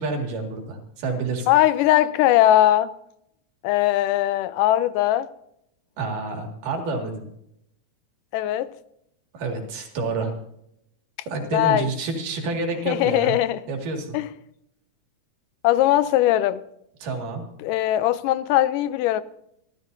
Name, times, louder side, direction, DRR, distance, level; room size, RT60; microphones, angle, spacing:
voice 1, 0.0-1.5 6.0-7.3 9.3-10.3 11.3-13.4 13.7-14.2 17.0-17.4, right 3 dB, 80° right, 3.7 m, -28 dB
voice 2, 1.5-2.9 3.6-5.3 8.3-8.7 11.5-11.9 12.9-13.6 14.1-14.3 15.6-16.6 17.6-19.2, left 13 dB, 90° left, 2.2 m, -20 dB
26.0 x 13.0 x 2.7 m
omnidirectional pair, 3.7 m